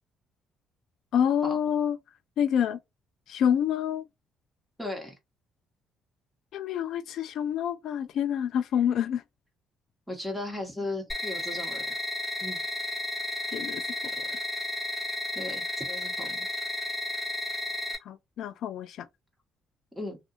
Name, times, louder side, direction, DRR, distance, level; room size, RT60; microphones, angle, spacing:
voice 1, 1.1-2.0 2.4-2.8 3.3-4.0 6.5-9.2 13.5-13.8 14.1-14.2 18.0-19.1, left 9 dB, 65° left, 0.4 m, -27 dB
voice 2, 4.8-5.1 10.1-11.8 12.4-12.6 15.3-16.5 19.9-20.2, left 2 dB, ahead, 1.3 m, -36 dB
sound 1, 11.1-17.9, left 1 dB, 20° left, 1.3 m, -33 dB
2.6 x 2.5 x 2.5 m
cardioid pair, 120°, 0 cm